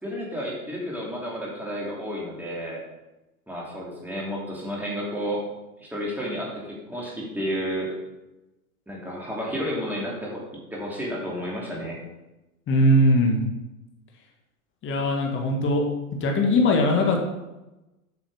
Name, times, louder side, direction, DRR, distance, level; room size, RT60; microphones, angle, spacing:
voice 1, 0.0-2.8 3.5-5.4 5.8-7.9 8.9-10.4 10.7-12.0, equal, 5° right, -4 dB, 3.0 m, -31 dB
voice 2, 12.7-13.4 14.8-15.8 16.2-17.2, left 1 dB, 25° left, 1 dB, 1.8 m, -20 dB
8.5 x 6.2 x 5.0 m, 0.99 s
hypercardioid pair, 110°, 44 cm